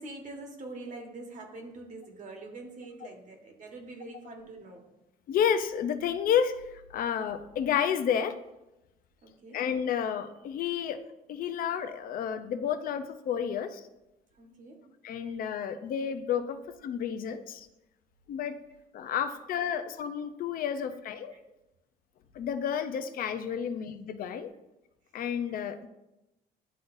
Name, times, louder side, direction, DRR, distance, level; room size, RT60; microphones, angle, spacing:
voice 1, 0.0-4.8 9.2-9.6 14.3-14.8 15.2-15.4 16.5-16.6 19.3-19.4 19.7-19.8 21.3-21.6 23.5-23.6 25.5-25.9, right 2 dB, 50° right, 2 dB, 1.4 m, -45 dB
voice 2, 5.3-6.5 6.9-8.3 9.5-11.0 11.3-13.8 15.0-16.6 16.8-17.7 18.3-18.6 18.9-21.3 22.3-24.5 25.1-25.9, left 8 dB, 55° left, 9 dB, 0.6 m, -30 dB
10.5 x 3.9 x 2.6 m, 0.95 s
cardioid pair, 110°, 17 cm